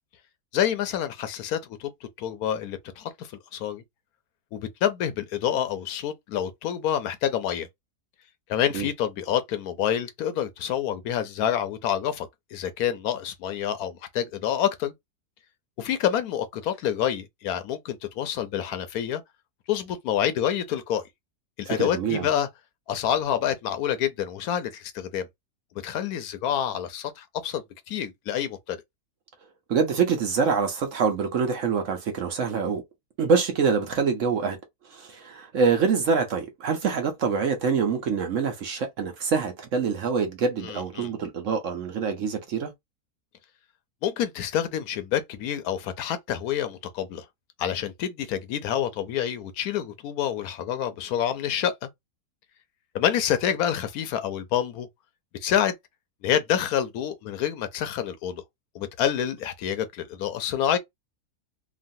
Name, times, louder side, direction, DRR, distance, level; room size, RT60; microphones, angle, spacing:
voice 1, 0.5-3.8 4.5-7.7 8.5-14.9 15.8-19.2 19.7-21.0 21.6-22.5 22.9-25.3 25.8-28.8 40.6-41.1 44.0-47.3 47.6-51.9 52.9-54.9 55.4-55.7 56.2-58.4 58.7-60.8, left 10 dB, 75° left, 1.0 m, -27 dB
voice 2, 21.7-22.3 29.7-32.8 33.2-34.6 34.8-42.7, right 5 dB, 60° right, 0.9 m, -25 dB
3.1 x 2.4 x 2.5 m
omnidirectional pair, 1.7 m